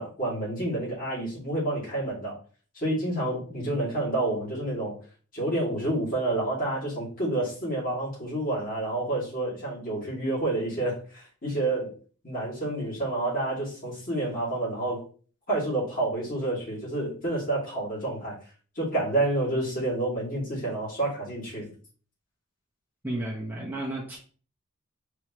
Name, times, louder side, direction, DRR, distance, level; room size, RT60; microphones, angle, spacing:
voice 1, 0.0-2.4 2.7-5.0 5.3-11.9 12.2-15.0 15.5-18.4 18.7-21.7, right 2 dB, 40° left, -6 dB, 2.3 m, -29 dB
voice 2, 23.0-24.2, right 1 dB, 10° right, -5 dB, 0.9 m, -33 dB
4.8 x 3.0 x 3.0 m, 0.40 s
head